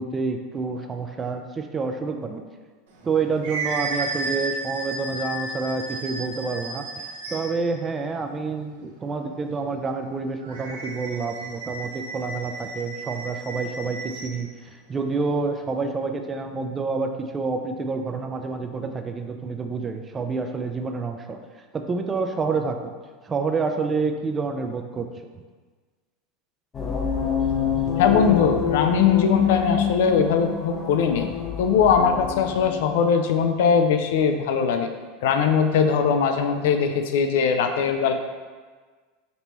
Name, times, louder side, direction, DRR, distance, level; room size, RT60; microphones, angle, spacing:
voice 1, 0.0-2.4 3.0-6.8 7.3-21.4 21.7-22.9 23.2-25.1 27.9-28.0, right 4 dB, 25° right, 6 dB, 0.4 m, -28 dB
sound 1, 2.9-7.7 10.4-14.4, right 3 dB, 80° right, 0.7 m, -33 dB
sound 2, 26.7-32.9, left 7 dB, 25° left, 0.6 m, -26 dB
voice 2, 28.0-31.3 31.6-34.9 35.2-38.1, left 6 dB, 75° left, 6 dB, 0.4 m, -20 dB
5.2 x 2.9 x 3.0 m, 1.4 s
supercardioid pair, 115°, 0 cm